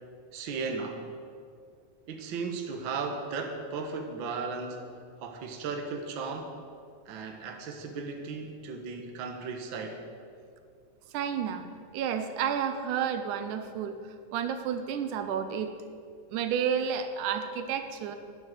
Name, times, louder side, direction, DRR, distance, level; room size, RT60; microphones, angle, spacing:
voice 1, 0.3-1.0 2.1-4.9 5.2-6.5 7.0-10.0, right 4 dB, 50° right, 3 dB, 1.6 m, -36 dB
voice 2, 11.1-11.7 11.9-14.0 14.3-15.7 16.3-18.2, right 8 dB, 85° right, 8 dB, 2.3 m, -31 dB
10.0 x 9.9 x 8.0 m, 2.3 s
omnidirectional pair, 3.4 m